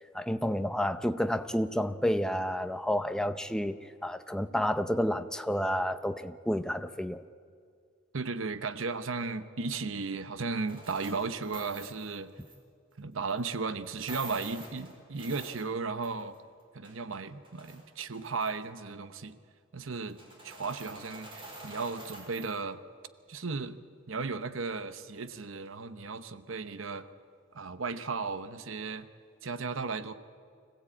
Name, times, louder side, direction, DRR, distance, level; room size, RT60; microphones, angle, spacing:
voice 1, 0.1-3.8 4.0-7.2, equal, 5° left, 0.7 m, -30 dB
voice 2, 8.1-12.3 13.0-16.4 16.7-19.4 19.7-20.2 20.4-22.8 23.3-23.8 24.1-27.0 27.5-29.1 29.4-30.1, right 4 dB, 75° right, 0.9 m, -35 dB
sound 1, 10.6-12.6 13.3-13.4 13.9-16.4 16.6-17.8 18.1-18.7 20.0-22.6, right 2 dB, 25° right, 4.5 m, -47 dB
25.0 x 16.0 x 8.7 m
head